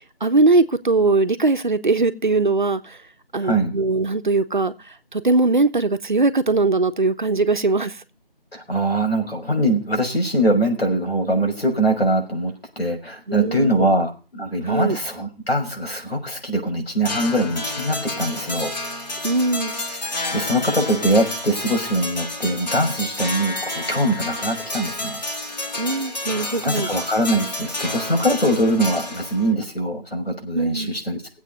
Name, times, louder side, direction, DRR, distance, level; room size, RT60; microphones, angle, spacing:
voice 1, 0.2-3.0 3.3-4.7 5.1-8.0 13.3-13.9 14.6-15.0 19.2-19.7 25.8-26.9 30.5-31.0, right 3 dB, 55° right, 1.3 m, -20 dB
voice 2, 3.4-3.8 8.5-18.7 20.0-25.2 26.6-31.2, right 1 dB, 85° left, 6.0 m, -22 dB
sound 1, 17.0-29.5, left 1 dB, 45° left, 3.0 m, -30 dB
17.5 x 8.3 x 5.3 m
figure-of-eight pair, 165°, 30 cm